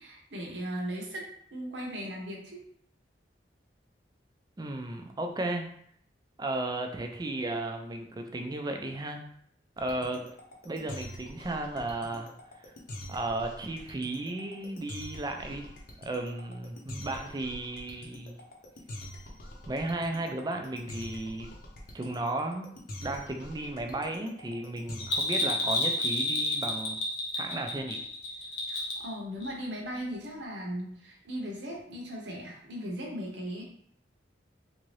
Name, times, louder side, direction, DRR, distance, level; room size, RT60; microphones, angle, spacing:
voice 1, 0.0-2.7 28.7-33.6, equal, 70° right, -2 dB, 0.8 m, -38 dB
voice 2, 4.6-5.7 6.4-9.2 9.8-10.2 10.6-12.3 12.6-12.7 13.1-18.4 19.7-21.5 21.9-22.7 23.0-27.0 27.3-28.1, right 2 dB, 20° right, 4 dB, 0.4 m, -34 dB
sound 1, 9.8-25.4, left 1 dB, 55° left, 0.7 m, -44 dB
Bell, 25.0-29.1 29.4-29.5, left 2 dB, 90° left, 1.0 m, -30 dB
3.5 x 2.6 x 3.2 m, 0.67 s
head